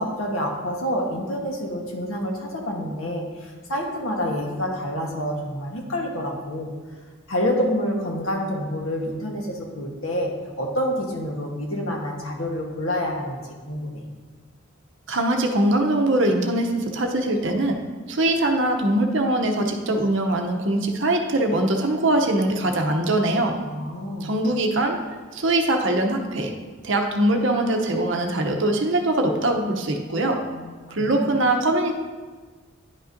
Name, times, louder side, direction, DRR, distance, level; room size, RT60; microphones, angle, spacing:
voice 1, 0.0-6.7 7.3-13.4 13.7-14.0 23.6-24.3 30.5-31.3, equal, 80° left, 0 dB, 1.2 m, -28 dB
voice 2, 15.1-17.7 18.1-23.5 24.2-25.0 25.3-26.5 26.8-30.4 30.9-32.0, right 1 dB, 60° right, 3 dB, 0.7 m, -22 dB
10.5 x 5.2 x 2.6 m, 1.4 s
head